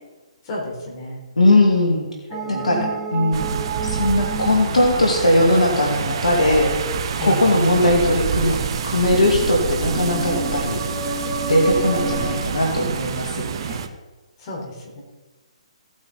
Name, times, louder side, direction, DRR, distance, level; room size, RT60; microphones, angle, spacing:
voice 1, 0.5-1.2 2.3-2.8 7.2-7.5 14.4-15.0, left 1 dB, 40° left, -1 dB, 4.2 m, -31 dB
voice 2, 1.4-2.1 2.5-3.6 3.9-6.7 7.2-8.6 8.8-10.8 11.5-13.8, left 1 dB, 85° left, 0 dB, 2.3 m, -19 dB
sound 1, 2.3-7.1 9.7-12.4, right 3 dB, 5° right, 3.4 m, -31 dB
sound 2, 3.3-13.9, right 7 dB, 45° right, 1.0 m, -27 dB
17.0 x 8.7 x 4.1 m, 1.2 s
hypercardioid pair, 140°, 4 cm